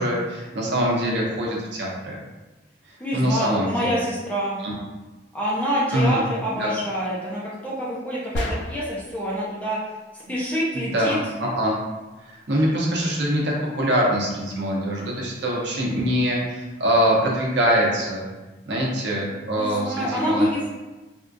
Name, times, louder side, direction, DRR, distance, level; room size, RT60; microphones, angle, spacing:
voice 1, 0.0-2.2 2.9-3.9 4.6-4.7 5.9-6.2 6.6-6.7 10.7-11.7 12.3-18.2 18.7-20.4, equal, 70° right, -3 dB, 0.7 m, -23 dB
voice 2, 3.0-4.6 5.3-9.8 10.1-11.2 19.6-20.7, equal, 10° left, -7 dB, 0.6 m, -26 dB
sound 1, 8.3-9.1, left 1 dB, 75° left, 0.4 m, -29 dB
3.5 x 2.4 x 2.6 m, 1.1 s
head